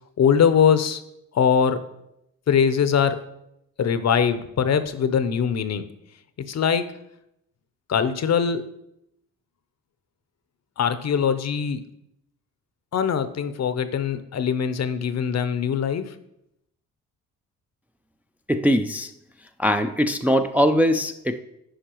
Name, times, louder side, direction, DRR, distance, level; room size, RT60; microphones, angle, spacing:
voice 1, 0.2-1.0 1.3-1.8 2.5-3.2 3.8-5.8 6.5-6.9 7.9-8.7 10.8-11.8 12.9-16.1, left 7 dB, 50° left, 11 dB, 0.7 m, -22 dB
voice 2, 18.5-19.1 19.6-21.4, equal, 5° right, 6 dB, 0.4 m, -21 dB
10.0 x 4.6 x 3.0 m, 0.81 s
supercardioid pair, 55°, 35 cm